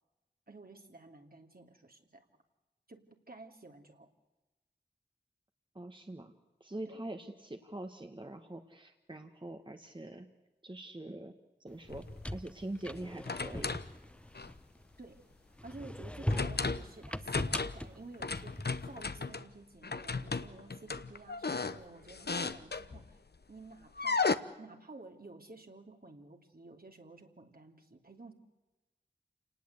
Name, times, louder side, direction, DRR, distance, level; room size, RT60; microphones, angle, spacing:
voice 1, 0.5-2.3 2.9-4.1 6.8-7.0 15.0-15.2 15.6-23.2 23.5-24.3 24.6-28.3, right 3 dB, 55° right, 4 dB, 2.9 m, -52 dB
voice 2, 5.8-6.3 6.6-10.3 10.6-11.3 11.6-12.0 12.3-13.7, right 1 dB, 25° right, 6 dB, 1.6 m, -43 dB
sound 1, 11.8-15.1 15.6-19.0, left 1 dB, 5° left, 0.8 m, -40 dB
sound 2, 11.9-12.3 13.0-13.9 14.3-14.6 16.3-16.9 17.2-17.9 18.2-19.4 19.8-23.1 24.0-24.4, left 4 dB, 70° left, 1.0 m, -35 dB
28.5 x 19.0 x 8.2 m, 1.1 s
wide cardioid pair, 60°, 18 cm